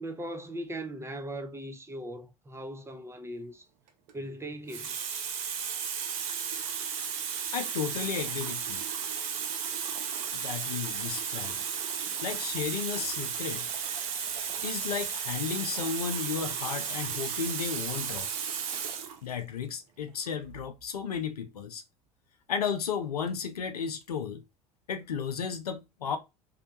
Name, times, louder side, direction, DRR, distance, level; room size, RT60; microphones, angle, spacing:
voice 1, 0.0-3.6 4.1-5.0, right 1 dB, 15° right, 0.5 m, -39 dB
Water tap faucet, 3.9-4.1 4.7-19.2 20.1-20.3, right 7 dB, 65° right, 0.6 m, -34 dB
voice 2, 7.5-8.8 10.3-11.6 12.2-13.7 14.6-18.3 19.2-21.8 22.5-24.4 24.9-26.2, left 7 dB, 90° left, 0.5 m, -34 dB
2.7 x 2.2 x 2.7 m
hypercardioid pair, 65°, 19 cm